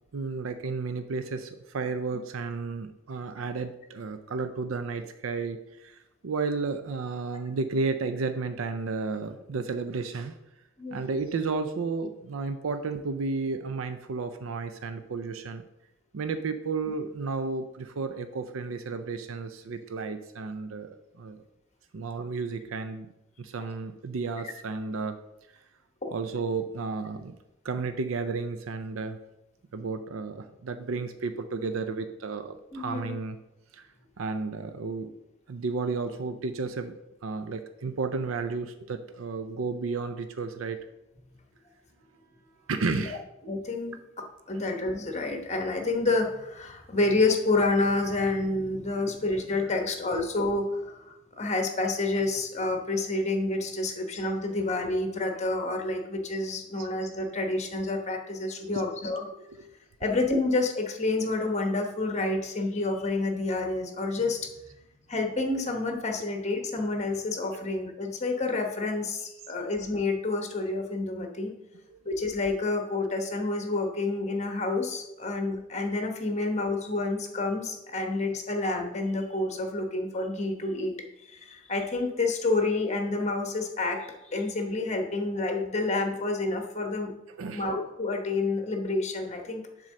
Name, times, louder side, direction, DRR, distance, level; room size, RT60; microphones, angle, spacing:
voice 1, 0.1-6.0 6.2-10.3 10.9-15.6 16.1-20.9 21.2-21.4 21.9-23.1 23.4-25.2 26.1-27.4 27.6-29.2 29.7-33.4 33.7-33.8 34.2-35.1 35.5-36.9 37.2-40.8 42.7-43.2 49.0-49.1 56.8-56.9 58.6-58.8 59.2-59.3 59.6-59.7 71.9-72.0 87.4-87.6, right 4 dB, 85° right, 9 dB, 0.5 m, -32 dB
voice 2, 32.7-33.2 42.9-43.2 43.4-44.0 44.5-59.2 60.0-64.5 65.1-71.5 72.0-81.0 81.2-87.1 87.5-89.6, left 2 dB, 35° left, 4 dB, 1.1 m, -29 dB
7.4 x 3.8 x 6.4 m, 0.90 s
head